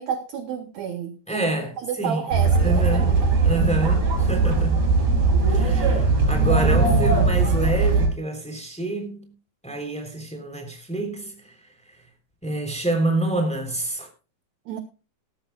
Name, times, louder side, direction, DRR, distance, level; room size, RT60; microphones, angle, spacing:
voice 1, 0.0-1.4 1.8-3.4 14.7-14.8, right 8 dB, 70° right, 1.7 m, -31 dB
voice 2, 1.3-2.3 2.6-3.2 3.4-4.9 5.5-9.3 9.6-11.6 11.9-12.0 12.4-14.1, right 2 dB, ahead, 2.7 m, -27 dB
sound 1, 2.3-8.1, right 4 dB, 45° right, 5.8 m, -19 dB
18.5 x 14.0 x 2.3 m
omnidirectional pair, 4.4 m